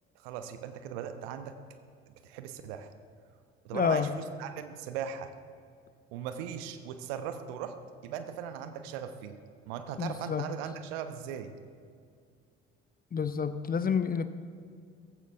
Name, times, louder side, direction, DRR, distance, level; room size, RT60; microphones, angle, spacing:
voice 1, 0.1-1.6 2.1-2.9 3.6-5.3 6.1-7.8 8.0-9.4 9.7-11.5, right 8 dB, 65° right, 9 dB, 1.0 m, -39 dB
voice 2, 3.7-4.1 10.0-10.5 13.1-14.3, left 6 dB, 30° left, 12 dB, 0.8 m, -29 dB
17.0 x 15.0 x 3.6 m, 2.2 s
figure-of-eight pair, 50°, 32 cm